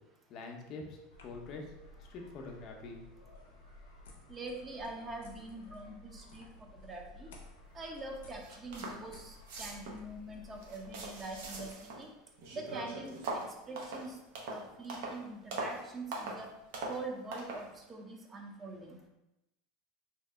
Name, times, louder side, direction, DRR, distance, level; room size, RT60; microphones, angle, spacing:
voice 1, 0.3-1.7 2.1-3.0, left 3 dB, 45° left, 1 dB, 0.6 m, -45 dB
sound 1, 1.1-11.7, left 2 dB, 85° left, 0.6 m, -55 dB
voice 2, 4.3-6.5 6.8-7.3 7.7-11.7 12.0-12.1 12.5-13.1 13.7-14.1 14.5-16.5 16.9-19.0, right 2 dB, 25° right, 2 dB, 0.6 m, -44 dB
sound 2, 8.1-8.2 8.4-9.0 9.3-10.0 10.5-12.1 12.4-15.2 15.5-15.8 16.1-16.4 16.7-17.0 17.3-17.7, right 2 dB, 75° right, 0.7 m, -41 dB
2.8 x 2.0 x 3.4 m, 0.92 s
supercardioid pair, 110°, 0 cm